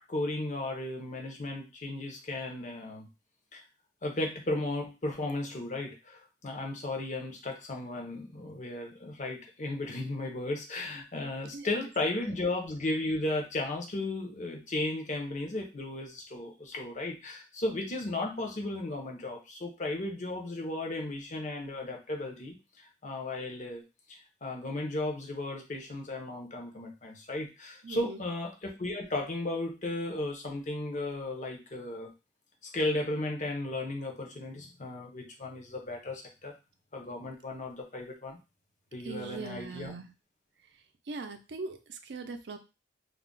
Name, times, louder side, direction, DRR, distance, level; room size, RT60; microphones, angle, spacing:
voice 1, 0.0-3.1 3.5-3.6 4.0-23.8 24.1-32.1 32.7-36.5 36.9-38.4 38.9-39.9, left 2 dB, 45° left, 1 dB, 0.7 m, -35 dB
voice 2, 27.8-28.2 39.0-40.1 41.1-42.6, right 4 dB, 75° right, 7 dB, 0.5 m, -40 dB
2.4 x 2.1 x 3.7 m, 0.28 s
head